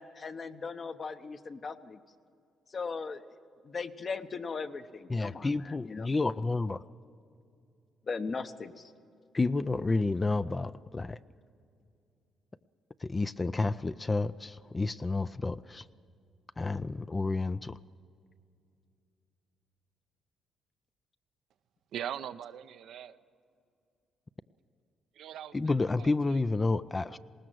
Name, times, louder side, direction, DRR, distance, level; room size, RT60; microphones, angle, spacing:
voice 1, 0.0-2.0 2.7-3.2 3.6-6.1 8.1-8.8, left 4 dB, 40° left, 9 dB, 1.0 m, -38 dB
voice 2, 5.1-6.8 9.3-11.2 13.0-15.8 16.6-17.8 25.5-27.2, left 3 dB, 25° left, 13 dB, 0.4 m, -30 dB
voice 3, 21.9-23.2 25.1-26.5, right 10 dB, 75° right, 11 dB, 0.6 m, -41 dB
20.0 x 18.0 x 7.8 m, 2.5 s
cardioid pair, 90°, 0 cm